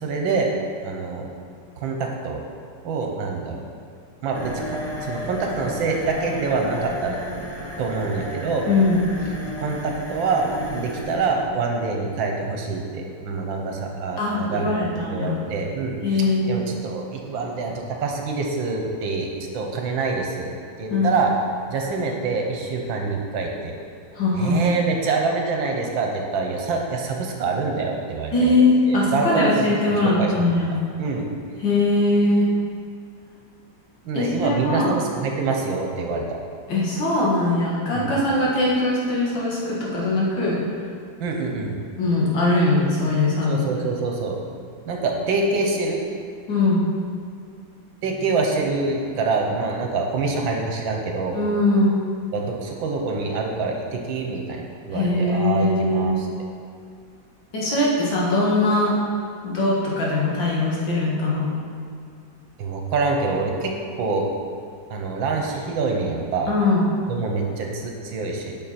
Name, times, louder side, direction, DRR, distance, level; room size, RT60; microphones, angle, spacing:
voice 1, 0.0-0.5 0.8-1.3 1.8-2.4 2.8-3.6 4.2-7.5 7.8-8.7 9.6-19.3 19.5-20.5 20.8-21.3 21.7-23.8 24.3-28.6 28.9-31.3 34.0-36.2 37.9-38.1 41.2-41.8 43.5-44.3 44.9-46.0 48.0-51.4 52.3-56.3 62.6-64.2 64.9-66.5 67.1-68.5, right 4 dB, 80° right, 1 dB, 1.7 m, -26 dB
sound 1, 4.3-13.9, equal, 10° left, 0.7 m, -34 dB
voice 2, 14.2-15.4 16.0-16.7 20.9-21.1 24.2-24.7 28.3-30.7 31.6-32.5 34.1-34.9 36.7-40.6 42.0-43.6 46.5-46.9 51.3-52.0 54.9-56.2 57.5-58.9 59.4-61.5 66.5-66.8, left 2 dB, 75° left, -5 dB, 2.4 m, -21 dB
9.4 x 5.9 x 4.3 m, 2.3 s
omnidirectional pair, 2.1 m